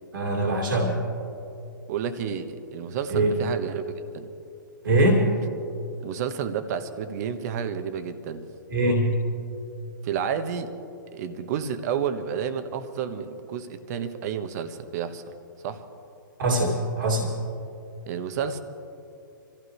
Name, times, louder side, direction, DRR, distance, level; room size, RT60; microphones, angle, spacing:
voice 1, 0.1-0.9 3.1-3.3 4.8-5.2 8.7-9.1 16.4-17.3, right 1 dB, 70° right, -1 dB, 2.6 m, -22 dB
voice 2, 1.9-3.8 4.1-4.3 6.0-8.5 10.0-10.7 11.1-15.2 15.6-15.8 18.1-18.6, right 7 dB, 50° right, 9 dB, 1.2 m, -30 dB
26.0 x 15.0 x 3.2 m, 2.7 s
hypercardioid pair, 120°, 11 cm